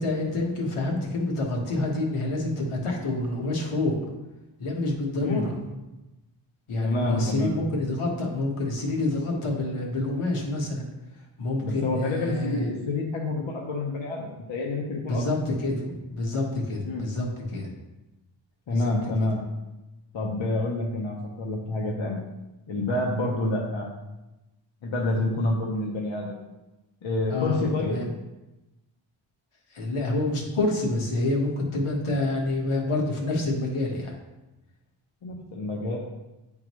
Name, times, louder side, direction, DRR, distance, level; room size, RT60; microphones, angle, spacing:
voice 1, 0.0-3.9 4.6-5.5 6.7-10.8 11.4-12.6 15.1-17.7 18.7-18.9 27.3-27.6 27.9-28.1 29.7-34.1, left 2 dB, 85° left, -1 dB, 1.4 m, -27 dB
voice 2, 6.8-7.6 11.6-15.2 16.8-17.0 18.7-19.4 20.1-22.2 22.7-23.9 24.8-26.4 27.0-28.0 35.2-36.0, left 2 dB, 65° left, -1 dB, 0.8 m, -28 dB
9.0 x 3.8 x 3.1 m, 1.0 s
wide cardioid pair, 165°, 49 cm